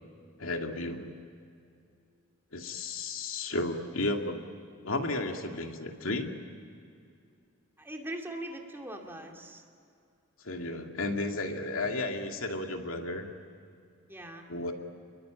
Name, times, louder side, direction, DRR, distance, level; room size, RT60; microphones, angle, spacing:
voice 1, 0.4-1.2 2.5-4.4 4.8-6.3 10.4-13.3 14.5-14.7, left 2 dB, 80° left, 3 dB, 2.4 m, -33 dB
voice 2, 7.8-9.6 14.1-14.5, right 1 dB, 10° right, 1 dB, 2.8 m, -41 dB
29.5 x 22.5 x 9.0 m, 2.4 s
head